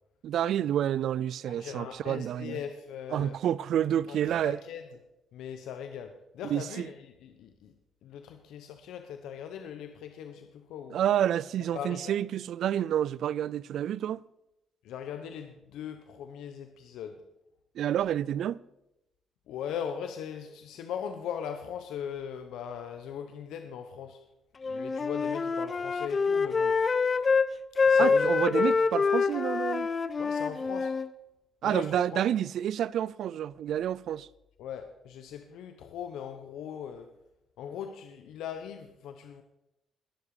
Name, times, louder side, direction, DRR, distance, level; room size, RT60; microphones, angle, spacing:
voice 1, 0.2-2.6 3.1-4.6 6.4-6.9 10.9-14.2 17.8-18.6 28.0-29.9 31.6-34.3, right 10 dB, 75° right, 0.3 m, -29 dB
voice 2, 1.5-3.4 4.1-4.8 5.3-7.7 8.0-11.0 11.7-12.2 14.8-17.1 19.5-24.2 24.7-26.8 27.9-28.7 30.2-30.9 31.6-32.3 34.6-37.1 37.6-39.4, left 8 dB, 85° left, 0.9 m, -39 dB
Wind instrument woodwind instrument, 24.6-27.5 27.8-31.1, left 5 dB, 35° left, 0.6 m, -26 dB
21.0 x 7.3 x 4.9 m
cardioid pair, 90°, 0 cm